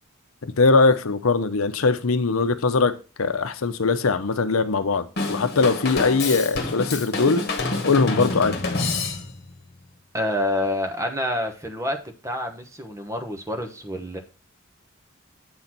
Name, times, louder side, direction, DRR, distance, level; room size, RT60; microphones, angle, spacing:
voice 1, 0.4-7.5 7.8-8.6, left 4 dB, 85° left, 0.7 m, -21 dB
Drum kit / Drum, 5.2-9.5, left 3 dB, 50° left, 1.4 m, -27 dB
voice 2, 10.1-12.0 12.2-14.2, left 1 dB, 15° right, 1.0 m, -27 dB
7.8 x 4.0 x 5.9 m
head